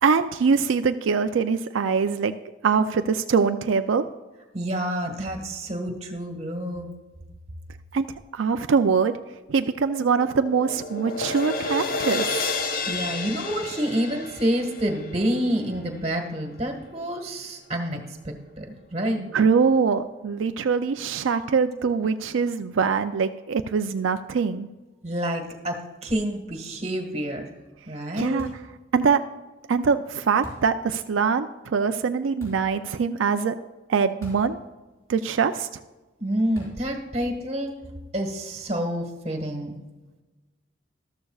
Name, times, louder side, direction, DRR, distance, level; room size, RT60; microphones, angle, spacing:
voice 1, 0.0-2.3 2.6-4.0 7.9-8.1 8.3-9.2 9.5-12.3 19.3-24.7 28.2-28.5 28.9-29.2 29.7-33.6 33.9-34.6 35.1-35.8, right 5 dB, 85° right, 8 dB, 0.4 m, -23 dB
voice 2, 4.5-6.9 12.9-19.2 25.0-27.5 27.9-28.4 36.2-37.7 38.1-39.8, equal, 35° right, 4 dB, 1.5 m, -28 dB
sound 1, 9.6-16.0, left 3 dB, 50° left, 0.8 m, -31 dB
sound 2, 28.4-28.8 30.4-30.8 32.4-32.8 34.2-34.6 34.9-35.0 36.6-36.9, equal, 15° left, 4.2 m, -42 dB
13.5 x 13.0 x 2.4 m, 1.2 s
head